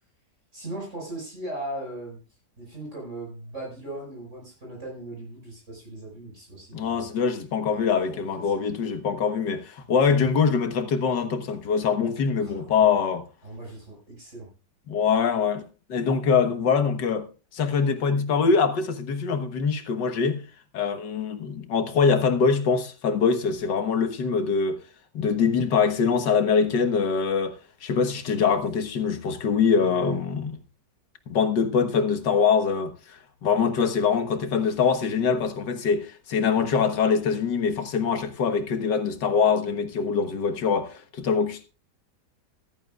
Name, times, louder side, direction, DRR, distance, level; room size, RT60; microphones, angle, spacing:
voice 1, 0.5-2.2 2.6-7.1 7.7-7.8 8.1-8.5 10.1-10.2 12.4-12.9 13.4-14.5 29.7-30.2, right 1 dB, 45° right, 5.7 m, -38 dB
voice 2, 6.7-13.2 14.9-17.3 17.5-20.4 20.7-24.8 25.1-30.5 31.3-41.6, left 6 dB, 90° left, 2.0 m, -23 dB
14.0 x 14.0 x 2.4 m
omnidirectional pair, 1.8 m